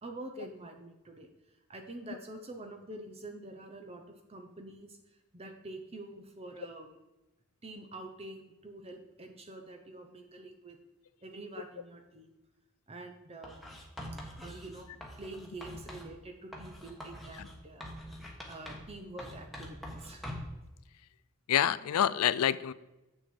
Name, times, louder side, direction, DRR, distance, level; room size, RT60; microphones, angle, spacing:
voice 1, 0.0-5.0 5.3-6.9 7.6-10.8 11.2-12.3 12.9-13.6 14.3-17.9 18.5-20.3, right 2 dB, 30° right, 4 dB, 0.8 m, -46 dB
Writing, 13.4-16.1 16.5-18.9 19.2-20.6, equal, ahead, 1.2 m, -44 dB
voice 2, 21.5-22.7, left 10 dB, 80° left, 18 dB, 0.4 m, -27 dB
7.5 x 6.6 x 4.5 m, 1.0 s
head